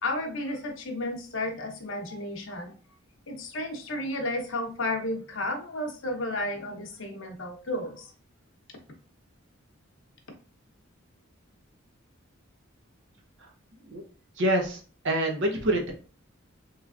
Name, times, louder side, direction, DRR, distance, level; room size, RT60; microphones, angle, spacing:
voice 1, 0.0-2.7 3.3-8.1, left 1 dB, 65° left, 4 dB, 0.8 m, -32 dB
voice 2, 14.4-14.8 15.0-15.9, right 1 dB, 65° right, 2 dB, 0.8 m, -26 dB
3.2 x 3.1 x 2.4 m, 0.38 s
head